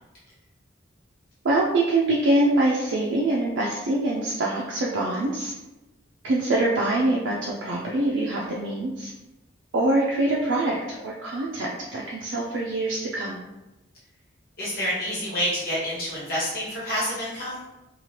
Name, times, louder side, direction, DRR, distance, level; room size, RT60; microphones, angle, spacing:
voice 1, 1.4-5.5 6.2-9.1 9.7-10.8 11.0-13.4, right 2 dB, 80° right, -4 dB, 0.4 m, -24 dB
voice 2, 14.6-17.6, equal, 50° left, -7 dB, 1.2 m, -28 dB
3.1 x 2.4 x 2.8 m, 1.0 s
head